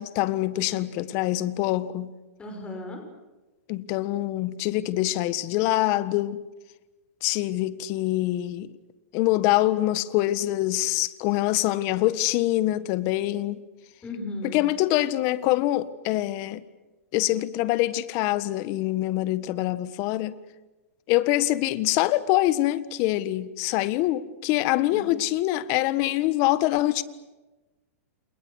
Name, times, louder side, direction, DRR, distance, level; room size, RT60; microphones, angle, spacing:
voice 1, 0.0-2.1 3.7-6.4 7.2-8.7 9.1-13.6 14.4-16.6 17.1-20.3 21.1-27.0, left 16 dB, 40° left, 1.5 m, -25 dB
voice 2, 0.7-1.1 2.4-3.0 14.0-14.7 24.9-25.2, left 2 dB, 15° left, 5.8 m, -37 dB
29.5 x 28.5 x 6.5 m
hypercardioid pair, 145°, 8 cm